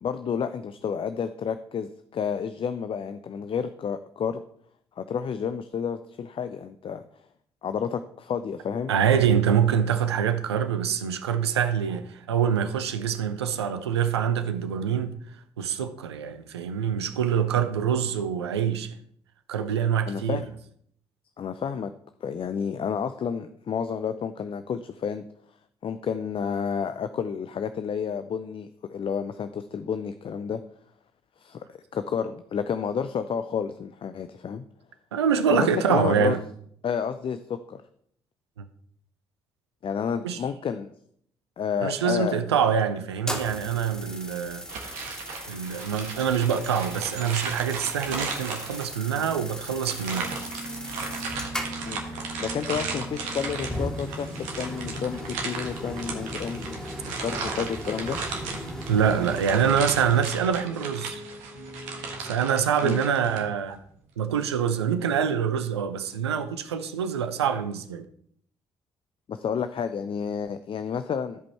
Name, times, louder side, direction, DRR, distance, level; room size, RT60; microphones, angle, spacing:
voice 1, 0.0-4.4 5.0-7.0 7.6-8.9 20.1-20.5 21.4-21.9 22.2-25.2 25.8-30.6 31.4-34.6 35.5-36.4 36.8-37.8 39.8-40.9 41.6-42.4 51.9-52.0 52.4-54.3 54.6-56.8 57.2-58.2 62.8-63.0 69.3-71.4, left 7 dB, 40° left, 0.5 m, -30 dB
voice 2, 8.9-15.1 15.6-18.9 19.5-20.4 35.1-36.4 38.6-38.7 40.2-40.4 41.8-44.6 45.5-50.3 58.9-61.2 62.2-63.8 64.2-68.0, right 7 dB, 85° right, 0.6 m, -25 dB
sound 1, 43.2-60.2, equal, 5° left, 2.8 m, -38 dB
sound 2, 44.7-49.1 49.8-63.4, right 4 dB, 70° right, 1.5 m, -36 dB
sound 3, 50.1-62.4, right 1 dB, 80° left, 3.6 m, -42 dB
14.5 x 5.2 x 4.3 m
figure-of-eight pair, 45°, 14 cm